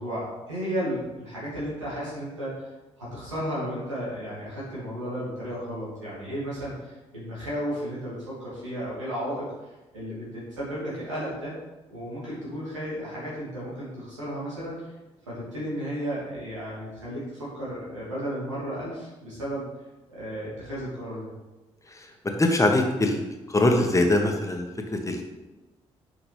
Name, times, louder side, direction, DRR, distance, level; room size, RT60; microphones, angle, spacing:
voice 1, 0.0-2.5 3.0-11.5 11.9-14.9 15.3-19.7 20.1-21.3, equal, 90° right, -8 dB, 2.7 m, -33 dB
voice 2, 22.4-23.2 23.5-24.6 24.9-25.3, left 2 dB, 20° left, 3 dB, 1.4 m, -22 dB
10.0 x 5.1 x 3.5 m, 1.1 s
figure-of-eight pair, 40°, 15 cm